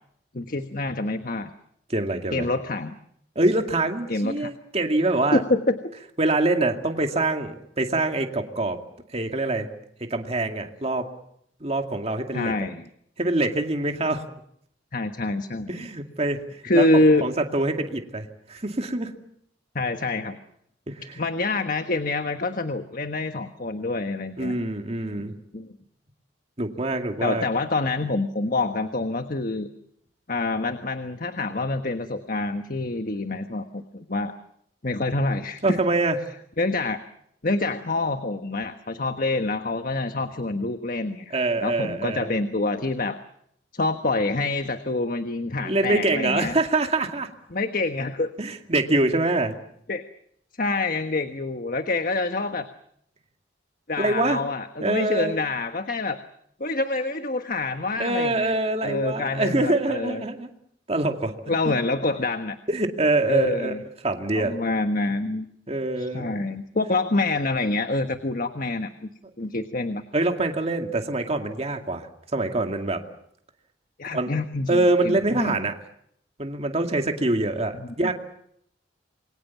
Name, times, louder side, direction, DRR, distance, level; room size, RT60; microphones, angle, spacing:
voice 1, 0.3-1.5 2.3-2.9 4.1-4.5 5.3-5.9 12.3-12.8 14.9-15.9 16.6-17.2 19.7-20.4 21.2-24.5 25.5-25.7 27.2-29.7 30.3-34.3 34.8-35.8 36.6-37.0 37.4-43.2 43.7-46.5 47.5-48.3 49.9-50.0 50.6-52.7 53.9-56.2 56.6-58.5 58.8-60.2 61.5-62.6 63.3-63.8 64.3-65.5 66.0-69.1 69.4-70.0 74.0-75.6 77.7-77.9, left 2 dB, 50° left, 8 dB, 1.3 m, -26 dB
voice 2, 1.9-2.5 3.4-5.4 6.2-8.8 9.1-9.7 10.1-11.1 11.6-12.5 13.2-14.2 15.7-16.4 16.7-19.1 20.9-21.2 24.4-25.3 26.6-27.5 35.6-36.2 41.3-42.3 45.6-47.3 48.4-49.5 54.0-54.4 54.8-55.4 58.0-60.5 60.9-61.7 62.7-63.8 64.0-64.6 65.7-66.5 70.1-72.1 72.3-73.0 74.1-74.3 74.7-75.8 76.4-78.1, right 2 dB, 35° right, 4 dB, 2.3 m, -25 dB
28.0 x 23.0 x 7.2 m, 0.72 s
head